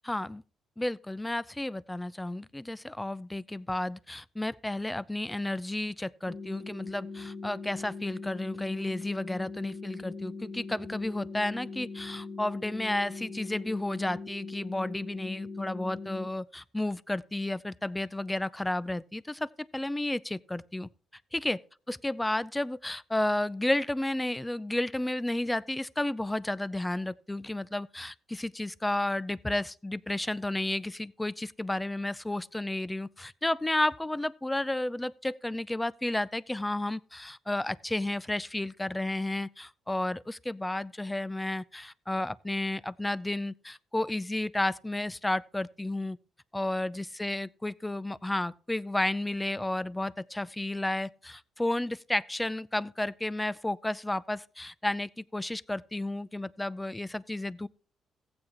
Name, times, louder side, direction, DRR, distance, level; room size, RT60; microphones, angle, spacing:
voice 1, 0.0-0.4 0.8-20.9 21.3-21.6 21.9-46.2 46.5-57.7, left 1 dB, 10° left, 0.4 m, -32 dB
sound 1, 6.3-16.3, left 4 dB, 30° left, 1.7 m, -41 dB
15.0 x 8.8 x 3.0 m
cardioid pair, 90°, 0 cm